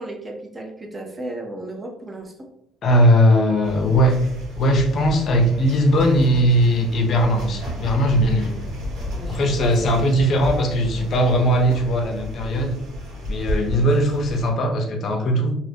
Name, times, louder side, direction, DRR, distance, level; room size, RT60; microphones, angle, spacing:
voice 1, 0.0-2.5 9.2-10.4, right 2 dB, 15° right, 2 dB, 0.5 m, -35 dB
voice 2, 2.8-4.2 4.6-8.5 9.3-12.8 13.3-15.5, equal, 40° left, 3 dB, 0.5 m, -19 dB
sound 1, 3.6-14.5, left 1 dB, 75° right, 1.4 m, -32 dB
2.5 x 2.5 x 3.3 m, 0.75 s
cardioid pair, 170°, 0 cm